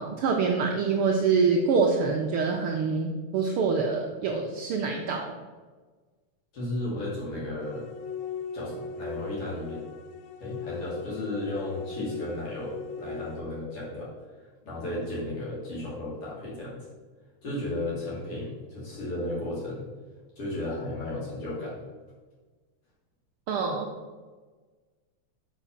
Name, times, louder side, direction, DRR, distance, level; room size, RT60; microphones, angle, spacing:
voice 1, 0.0-5.3 23.5-23.9, right 5 dB, 90° right, 1 dB, 1.2 m, -25 dB
voice 2, 6.5-7.9 8.5-9.8 10.4-14.1 14.4-16.9 17.4-19.9 20.4-21.9, left 1 dB, 50° left, -7 dB, 3.6 m, -34 dB
sound 1, 7.6-13.4, left 5 dB, 75° left, 1.9 m, -39 dB
6.1 x 6.1 x 5.6 m, 1.4 s
omnidirectional pair, 3.4 m